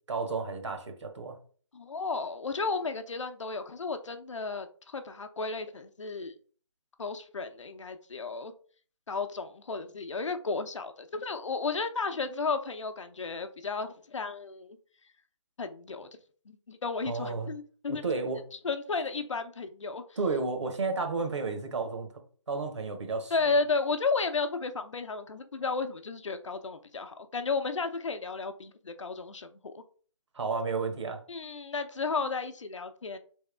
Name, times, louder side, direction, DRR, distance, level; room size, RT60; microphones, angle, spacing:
voice 1, 0.1-1.4 17.0-17.5 17.9-18.4 20.2-22.1 22.5-23.3 30.3-31.2, right 4 dB, 65° right, 4 dB, 1.3 m, -32 dB
voice 2, 1.7-6.3 7.0-8.5 9.1-14.8 15.6-16.1 16.5-18.0 18.6-20.0 23.3-29.8 31.3-33.2, left 4 dB, 75° left, 8 dB, 0.7 m, -33 dB
4.0 x 3.5 x 3.3 m, 0.43 s
figure-of-eight pair, 165°, 16 cm